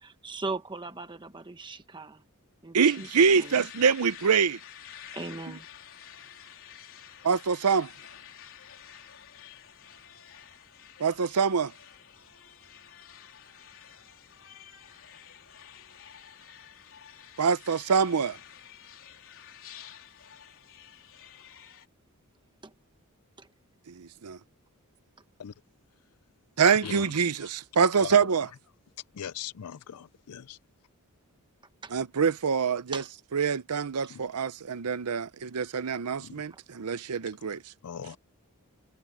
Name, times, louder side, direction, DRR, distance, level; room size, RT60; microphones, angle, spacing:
voice 1, 0.0-2.2 2.6-3.6 5.1-5.7 22.6-22.7 23.4-23.5 31.8-31.9 32.9-33.1 36.5-36.6, right 3 dB, 20° right, 1.2 m, -39 dB
voice 2, 2.7-4.6 7.2-7.9 11.0-11.7 17.4-18.4 24.0-24.4 26.6-28.5 31.9-33.0 33.3-37.6, right 6 dB, 85° right, 0.7 m, -25 dB
sound 1, 2.8-21.9, left 9 dB, 65° left, 3.9 m, -50 dB
voice 3, 26.7-27.0 28.0-28.2 29.1-30.6 34.1-34.2 36.2-36.4 37.8-38.2, left 8 dB, 85° left, 0.5 m, -39 dB
head